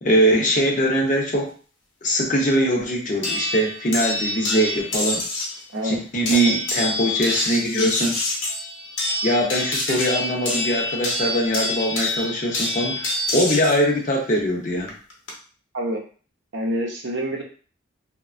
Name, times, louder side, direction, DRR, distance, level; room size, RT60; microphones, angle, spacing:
voice 1, 0.0-1.5 2.0-5.2 5.8-8.2 9.2-14.9, equal, 40° left, 0 dB, 0.6 m, -22 dB
sound 1, 3.2-5.6 6.3-13.8 14.9-15.3, left 2 dB, 70° left, 0.8 m, -26 dB
voice 2, 16.5-17.4, right 1 dB, 65° right, 1 dB, 0.6 m, -26 dB
3.1 x 2.1 x 2.4 m, 0.40 s
head